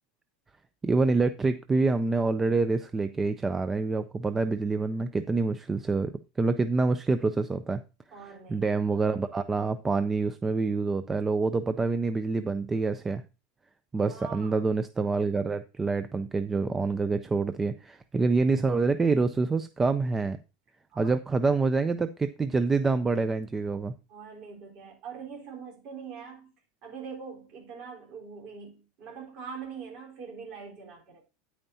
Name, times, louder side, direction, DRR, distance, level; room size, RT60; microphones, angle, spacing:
voice 1, 0.8-6.1 6.4-7.8 8.5-13.2 13.9-20.4 21.0-23.9, right 3 dB, 10° right, 0.3 m, -26 dB
voice 2, 8.1-8.6 8.9-9.0 14.1-14.6 20.9-21.1 24.1-26.5 26.8-31.2, right 6 dB, 35° right, 4.2 m, -43 dB
9.5 x 8.9 x 2.7 m
supercardioid pair, 175°, 2 cm